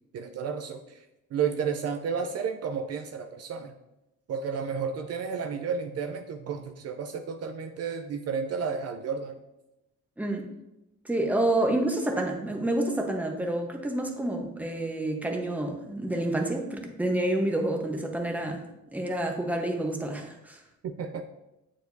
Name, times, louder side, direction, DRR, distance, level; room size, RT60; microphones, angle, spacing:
voice 1, 0.1-1.0 1.3-3.7 4.3-9.4 20.8-21.2, right 6 dB, 55° right, 5 dB, 0.6 m, -32 dB
voice 2, 10.2-10.5 11.0-18.6 18.9-20.6, right 1 dB, 5° right, 2 dB, 1.0 m, -28 dB
7.7 x 4.8 x 2.6 m, 0.93 s
cardioid pair, 90°, 31 cm